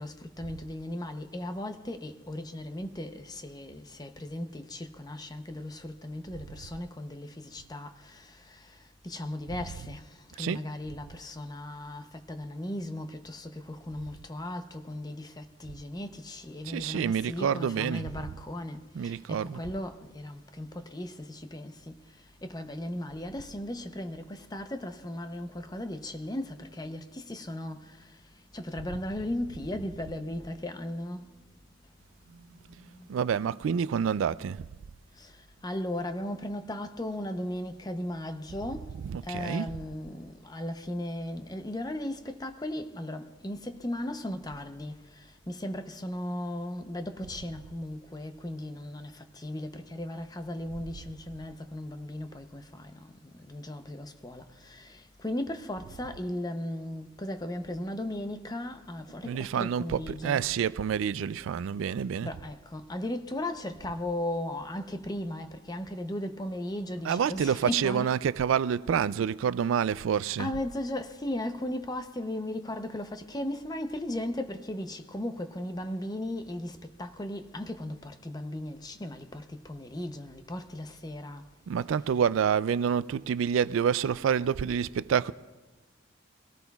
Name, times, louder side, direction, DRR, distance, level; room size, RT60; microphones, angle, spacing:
voice 1, 0.0-8.8 9.0-21.9 22.4-28.1 28.5-31.3 32.9-33.1 35.2-35.3 35.6-38.9 39.2-60.4 62.2-68.1 70.4-81.4, left 1 dB, 20° left, 0.7 m, -37 dB
voice 2, 9.5-9.9 10.4-10.6 16.6-18.3 18.9-19.6 33.1-34.7 38.9-39.8 59.2-62.3 67.0-70.5 81.7-85.3, right 7 dB, 80° right, 0.3 m, -28 dB
24.0 x 17.5 x 2.4 m
head